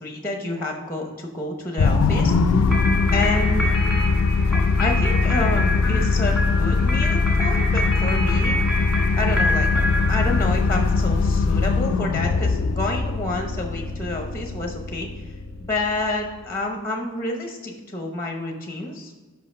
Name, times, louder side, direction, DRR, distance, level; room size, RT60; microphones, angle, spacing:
voice 1, 0.0-2.7 3.1-3.7 4.8-8.6 9.2-9.7 10.1-15.1 15.6-19.1, left 2 dB, 10° left, 2 dB, 0.7 m, -28 dB
sound 1, 1.8-16.3, left 4 dB, 65° left, 0.4 m, -21 dB
sound 2, 2.7-11.0, equal, 5° right, 1.6 m, -28 dB
5.7 x 5.5 x 5.2 m, 1.4 s
head